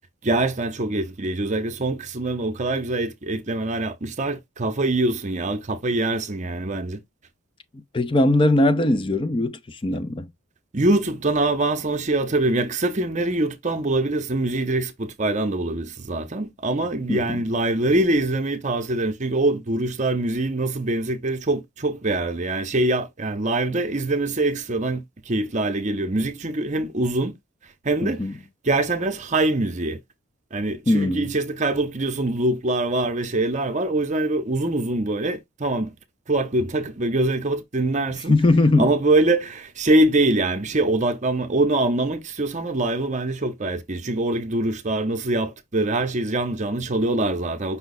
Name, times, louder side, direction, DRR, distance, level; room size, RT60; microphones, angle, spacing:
voice 1, 0.2-7.0 10.7-27.3 27.8-28.2 28.6-30.0 30.5-35.9 36.3-38.3 38.8-47.8, right 2 dB, 35° right, 0.7 m, -24 dB
voice 2, 7.9-10.3 17.1-17.4 28.0-28.3 30.9-31.3 38.3-38.9, left 2 dB, 25° left, 0.5 m, -20 dB
5.6 x 2.3 x 4.0 m
head